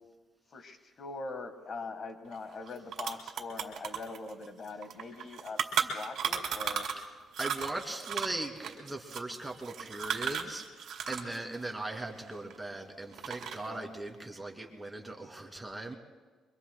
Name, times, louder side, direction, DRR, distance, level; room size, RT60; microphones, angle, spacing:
voice 1, 0.5-6.9 11.1-11.4 13.6-13.9, left 3 dB, 50° left, 7 dB, 1.5 m, -42 dB
sound 1, 2.3-2.4 2.7-7.1 7.3-11.4 11.6-12.8 13.1-13.8, right 8 dB, 75° right, 2.1 m, -35 dB
voice 2, 7.4-16.0, right 2 dB, 10° right, 1 dB, 2.5 m, -39 dB
26.0 x 24.0 x 2.2 m, 1.4 s
cardioid pair, 90°, 0 cm